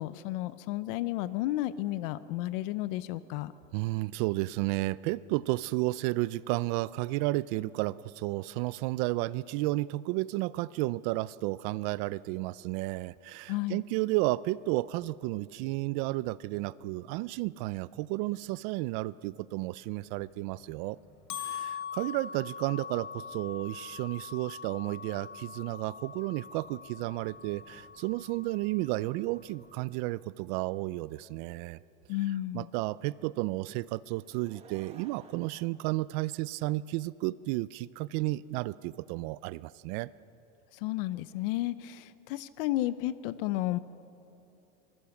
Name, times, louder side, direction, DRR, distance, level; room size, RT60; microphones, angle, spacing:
voice 1, 0.0-3.5 13.5-13.8 32.1-32.7 40.8-43.8, left 15 dB, 60° left, 15 dB, 0.7 m, -32 dB
voice 2, 3.7-21.0 21.4-31.8 32.5-40.1, right 19 dB, 50° right, 20 dB, 0.5 m, -32 dB
Bells Pitch Sampler, 20.1-30.0, left 7 dB, 45° left, 3.1 m, -43 dB
Laughter / Crowd, 34.1-36.7 37.4-37.5, right 5 dB, 20° right, 1.6 m, -55 dB
25.5 x 20.5 x 7.2 m, 3.0 s
supercardioid pair, 155°, 31 cm